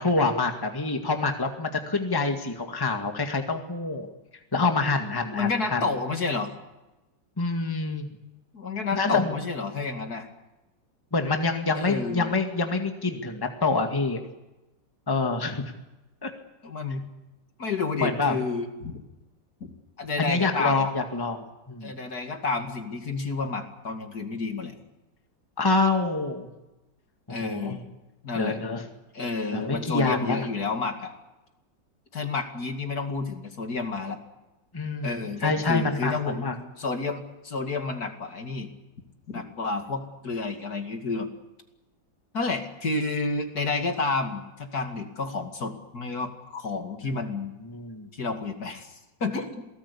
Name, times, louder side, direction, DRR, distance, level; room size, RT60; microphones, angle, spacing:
voice 1, 0.0-4.1 4.5-5.8 7.4-8.1 8.9-9.3 11.1-14.2 15.1-15.7 16.2-16.3 18.0-18.4 20.2-21.9 25.6-26.5 27.3-27.8 28.4-28.8 29.5-30.5 34.7-36.6 47.6-48.1, left 3 dB, 10° left, 4 dB, 1.9 m, -26 dB
voice 2, 5.3-6.5 8.5-10.3 11.8-12.3 16.6-17.1 17.6-19.0 19.6-19.7 20.0-20.9 21.8-24.7 27.3-27.8 28.2-28.6 29.1-31.1 32.1-34.2 35.0-38.7 39.3-41.3 42.3-47.5 48.1-49.6, left 3 dB, 55° left, 5 dB, 2.8 m, -30 dB
27.5 x 19.0 x 8.4 m, 1.0 s
omnidirectional pair, 1.9 m